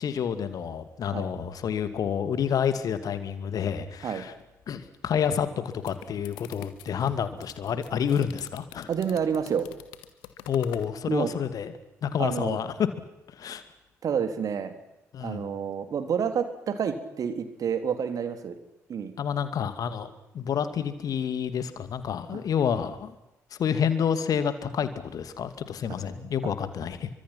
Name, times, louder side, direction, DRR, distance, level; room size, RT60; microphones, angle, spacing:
voice 1, 0.0-4.3 4.7-8.9 10.5-11.7 12.0-12.9 13.3-13.6 15.1-15.5 19.2-23.1 23.5-27.1, left 8 dB, 50° left, 11 dB, 2.5 m, -29 dB
sound 1, 5.5-10.9, left 13 dB, 65° left, 1.7 m, -47 dB
voice 2, 8.9-9.7 11.1-11.3 12.2-12.6 14.0-14.7 15.2-18.6 18.9-19.1 22.3-22.4 26.4-26.5, right 7 dB, 45° right, 9 dB, 3.2 m, -29 dB
29.5 x 24.5 x 5.9 m, 0.91 s
figure-of-eight pair, 45°, 8 cm